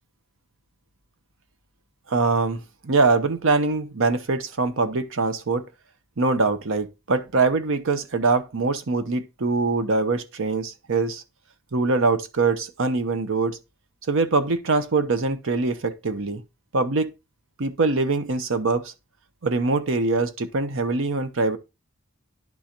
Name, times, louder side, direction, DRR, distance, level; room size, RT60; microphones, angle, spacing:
voice 1, 2.1-5.7 6.2-11.2 11.7-13.6 14.1-16.4 16.7-17.1 17.6-18.9 19.4-21.6, right 3 dB, 65° right, 0.7 m, -23 dB
10.5 x 3.8 x 2.9 m
head